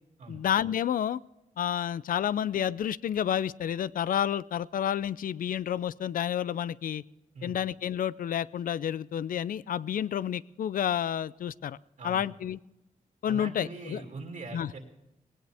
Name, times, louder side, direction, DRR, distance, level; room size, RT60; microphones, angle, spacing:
voice 1, 0.3-1.2 1.6-7.0 7.4-11.8 12.0-12.6 13.2-14.0 14.5-14.7, left 9 dB, 75° left, 20 dB, 0.4 m, -30 dB
voice 2, 12.0-12.3 13.2-14.8, right 3 dB, 65° right, 1 dB, 2.6 m, -42 dB
18.5 x 18.0 x 3.5 m, 0.96 s
wide cardioid pair, 115°, 15 cm